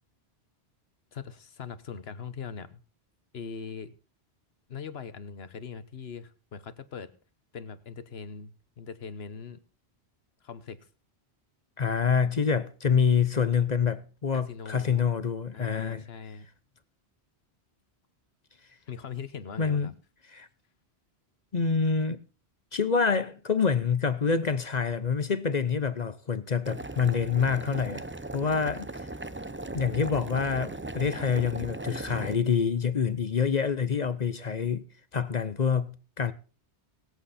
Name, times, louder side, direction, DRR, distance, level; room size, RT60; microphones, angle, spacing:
voice 1, 1.1-2.8 3.3-3.9 4.7-7.1 7.5-9.6 10.4-10.8 14.3-15.1 15.5-16.5 18.9-19.9, left 6 dB, 65° left, 1.4 m, -41 dB
voice 2, 11.8-16.0 19.6-19.9 20.3-20.5 21.5-22.2 22.7-28.1 28.3-29.1 29.7-34.8 35.1-36.3, left 6 dB, 45° left, 0.8 m, -26 dB
Boiling, 26.6-32.3, right 2 dB, 15° right, 0.4 m, -38 dB
22.5 x 8.2 x 4.2 m
omnidirectional pair, 1.1 m